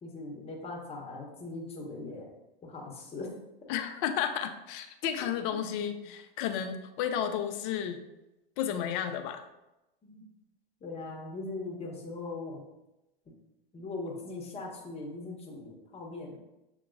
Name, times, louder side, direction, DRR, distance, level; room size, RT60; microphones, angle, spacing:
voice 1, 0.0-2.3 2.6-3.3 5.2-5.3 10.0-10.2 10.8-12.6 13.3-13.4 13.7-16.4, left 3 dB, 20° left, -1 dB, 1.0 m, -40 dB
voice 2, 3.7-8.0 8.6-9.4, left 9 dB, 40° left, 7 dB, 0.5 m, -32 dB
6.6 x 2.9 x 2.6 m, 0.95 s
hypercardioid pair, 110°, 30 cm